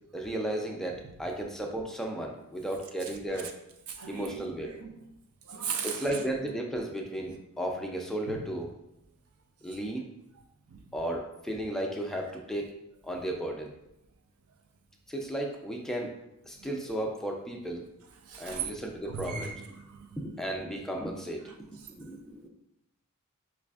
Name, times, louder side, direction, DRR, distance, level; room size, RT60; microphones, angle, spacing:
voice 1, 0.1-3.5 4.1-4.7 5.8-8.7 9.6-10.1 10.9-12.7 13.0-13.7 15.1-16.1 16.5-17.9 18.4-19.5 20.2-22.5, right 1 dB, ahead, 0.3 m, -34 dB
voice 2, 3.0-3.5 3.9-5.0 5.4-6.2 8.3-8.4 10.7-10.9 16.6-16.9 18.2-18.7 19.1-20.3 21.5-21.6, right 6 dB, 85° right, 0.5 m, -38 dB
4.9 x 2.4 x 2.3 m
head